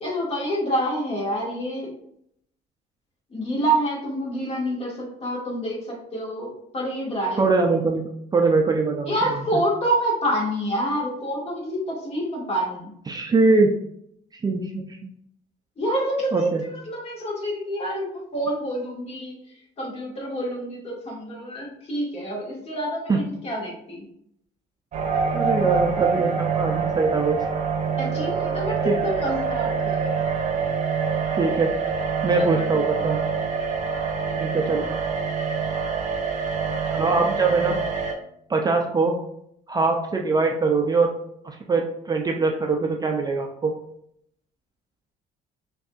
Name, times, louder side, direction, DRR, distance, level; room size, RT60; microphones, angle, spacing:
voice 1, 0.0-1.9 3.3-7.5 9.1-12.9 15.8-16.5 16.9-19.3 19.8-24.0 28.0-30.1 32.3-32.6, right 1 dB, 35° left, -2 dB, 1.6 m, -27 dB
voice 2, 7.4-9.1 9.5-9.6 13.1-13.7 14.4-15.0 16.3-16.6 23.1-23.2 25.3-27.5 28.7-29.0 31.3-31.7 32.2-33.2 34.4-34.9 36.9-37.8 38.5-39.1 39.7-41.1 41.4-43.7, right 3 dB, 25° right, 2 dB, 0.4 m, -22 dB
sound 1, 24.9-38.1, right 5 dB, 45° right, 0.8 m, -26 dB
6.0 x 2.7 x 2.4 m, 0.72 s
cardioid pair, 110°, 17 cm